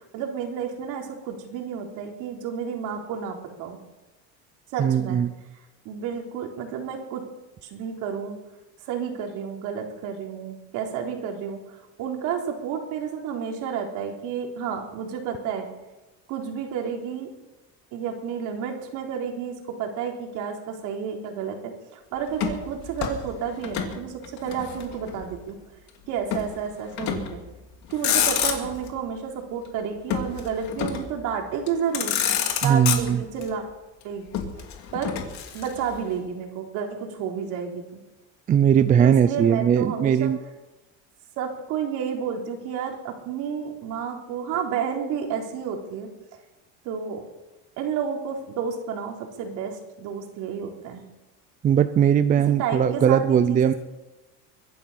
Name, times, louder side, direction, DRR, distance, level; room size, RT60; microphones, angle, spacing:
voice 1, 0.1-3.8 4.7-5.2 5.9-7.2 7.6-8.4 8.9-15.7 16.3-17.3 17.9-25.6 26.1-27.4 27.9-32.1 32.6-33.6 34.0-34.2 34.9-35.2 35.5-38.0 39.0-40.3 41.4-46.1 46.8-47.2 47.8-51.0 52.4-53.7, right 7 dB, 60° right, 2 dB, 3.7 m, -31 dB
voice 2, 4.8-5.3 32.6-33.2 38.5-40.4 51.6-53.7, right 8 dB, 25° right, 12 dB, 0.5 m, -19 dB
Motor vehicle (road), 22.3-24.0 24.2-25.3 26.3-26.5 27.0-27.4 27.8-28.9 30.1-31.2 31.7-31.8 31.9-33.5 34.3-36.0, left 9 dB, 50° left, 2.7 m, -28 dB
23.5 x 11.0 x 5.7 m, 1.1 s
cardioid pair, 140°, 34 cm